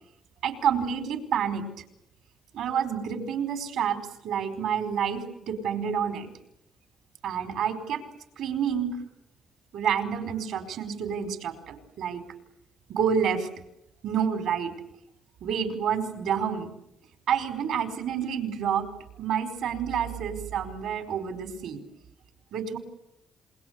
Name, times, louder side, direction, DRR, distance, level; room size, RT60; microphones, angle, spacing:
voice 1, 0.4-1.7 2.5-6.3 7.2-8.0 8.4-9.0 9.7-12.2 12.9-13.5 14.0-14.7 15.4-16.7 17.3-18.9 19.2-21.8 22.5-22.8, right 8 dB, 80° right, 10 dB, 4.6 m, -28 dB
27.5 x 22.5 x 8.3 m, 0.81 s
cardioid pair, 90°, 0 cm